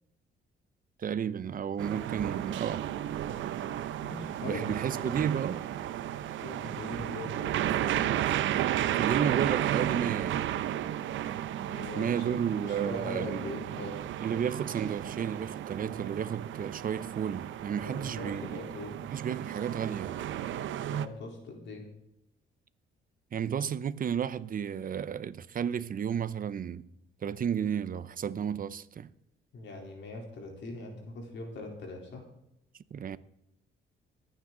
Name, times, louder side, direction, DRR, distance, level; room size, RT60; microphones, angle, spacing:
voice 1, 1.0-2.9 4.4-5.7 9.0-10.4 12.0-13.5 14.2-18.5 19.1-20.2 23.3-26.9 27.2-29.1 32.9-33.2, right 8 dB, 45° right, 0.7 m, -32 dB
sound 1, 1.8-21.1, right 11 dB, 75° right, 0.7 m, -33 dB
voice 2, 4.0-5.1 6.4-7.9 11.7-12.2 12.6-14.1 17.8-19.0 20.9-21.9 29.5-32.2, left 2 dB, 65° left, 3.6 m, -41 dB
24.5 x 9.0 x 3.9 m
cardioid pair, 90°, 20 cm